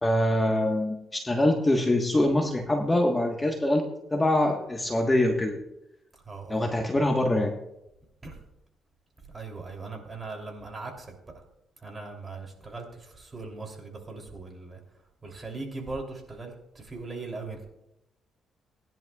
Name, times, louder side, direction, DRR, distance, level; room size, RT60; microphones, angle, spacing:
voice 1, 0.0-3.8 4.1-5.6 6.5-7.5, left 1 dB, 20° left, 2 dB, 1.4 m, -24 dB
voice 2, 6.2-6.7 8.2-8.4 9.3-11.2 11.8-14.8 15.2-17.7, right 3 dB, 25° right, 2 dB, 3.1 m, -39 dB
20.0 x 10.5 x 2.4 m, 0.86 s
cardioid pair, 90°, 0 cm